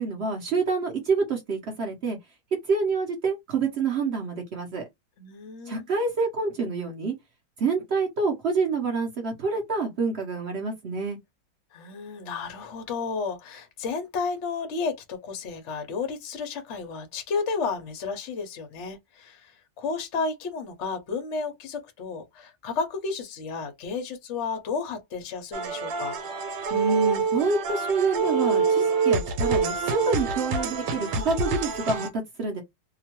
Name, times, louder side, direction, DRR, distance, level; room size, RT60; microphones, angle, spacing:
voice 1, 0.0-2.2 2.7-4.9 5.7-7.1 7.6-11.2 26.7-32.6, right 4 dB, 60° right, 0.7 m, -27 dB
voice 2, 5.2-5.8 11.7-26.2, left 4 dB, 60° left, 0.7 m, -32 dB
sound 1, 25.5-32.1, right 4 dB, 80° right, 1.3 m, -26 dB
2.9 x 2.2 x 2.8 m
omnidirectional pair, 2.0 m